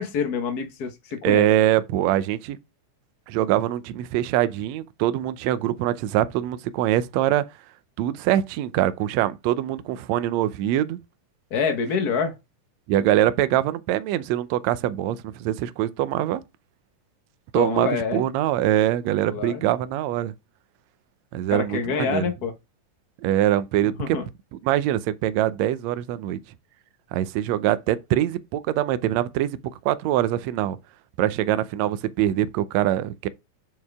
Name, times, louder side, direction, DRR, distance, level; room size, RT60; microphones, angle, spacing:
voice 1, 0.0-1.5 11.5-12.3 17.5-18.2 19.3-19.6 21.5-22.5 23.9-24.3, left 6 dB, 50° left, 1.1 m, -26 dB
voice 2, 1.2-2.6 3.3-7.4 8.0-11.0 12.9-16.4 17.5-20.3 21.3-22.3 23.2-24.2 24.5-26.4 27.1-29.6 29.8-30.8 31.2-33.3, right 12 dB, 80° right, 1.6 m, -23 dB
8.5 x 4.6 x 3.6 m
omnidirectional pair, 3.8 m